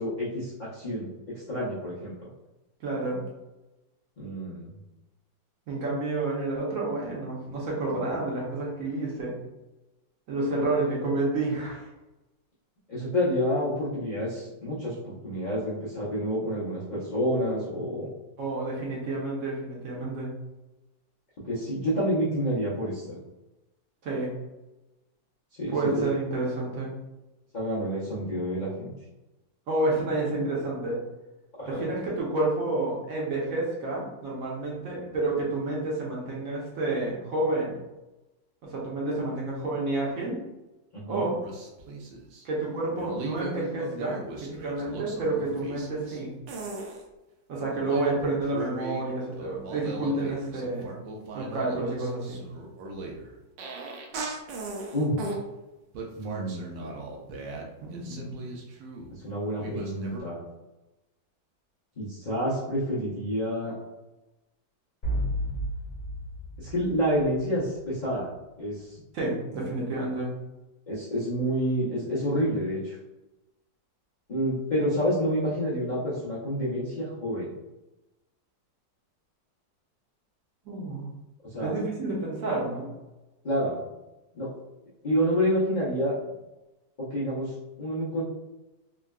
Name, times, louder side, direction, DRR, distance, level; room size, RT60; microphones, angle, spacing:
voice 1, 0.0-2.2 4.2-4.7 12.9-18.1 21.4-23.2 25.6-26.0 27.5-28.9 31.6-31.9 40.9-41.3 54.9-55.1 56.1-57.0 59.1-60.4 62.0-63.7 66.6-68.3 68.6-69.0 70.9-73.0 74.3-77.5 81.5-81.7 83.4-83.8 84.3-84.5 85.0-86.1 87.0-88.3, equal, 85° left, -9 dB, 0.4 m, -28 dB
voice 2, 2.8-3.2 5.7-9.4 10.3-11.9 18.4-20.3 24.0-24.3 25.7-26.9 29.7-31.0 31.6-37.7 38.6-40.4 41.1-41.4 42.4-46.3 47.5-50.9 51.3-52.4 57.8-58.4 69.1-70.4 80.6-81.1 81.6-82.9, right 2 dB, 55° right, -4 dB, 1.1 m, -29 dB
sound 1, 41.4-42.4 42.9-46.2 46.5-47.0 47.6-49.1 49.3-55.4 55.9-59.2 59.6-60.2, right 3 dB, 80° right, 1.2 m, -38 dB
sound 2, 65.0-67.9, equal, 35° left, 1.0 m, -32 dB
3.6 x 2.2 x 2.3 m, 1.0 s
omnidirectional pair, 2.0 m